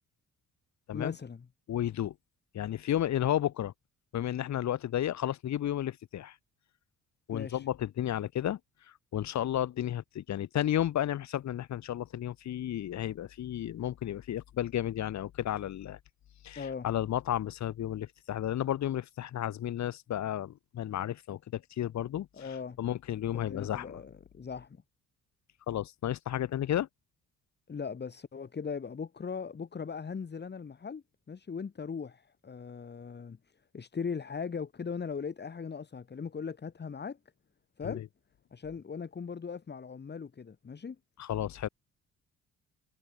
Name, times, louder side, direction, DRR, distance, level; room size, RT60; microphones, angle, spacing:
voice 1, 0.9-1.5 7.3-7.6 16.6-16.9 22.3-22.8 23.3-24.8 27.7-33.4 33.7-37.2 37.8-38.0 38.5-41.0, left 6 dB, 35° left, 2.3 m, -39 dB
voice 2, 1.7-2.1 2.5-3.7 4.1-6.4 7.3-8.6 9.1-16.0 16.4-24.0 25.7-26.9 37.8-38.0 41.2-41.7, left 11 dB, 65° left, 1.6 m, -32 dB
cardioid pair, 90°, 30 cm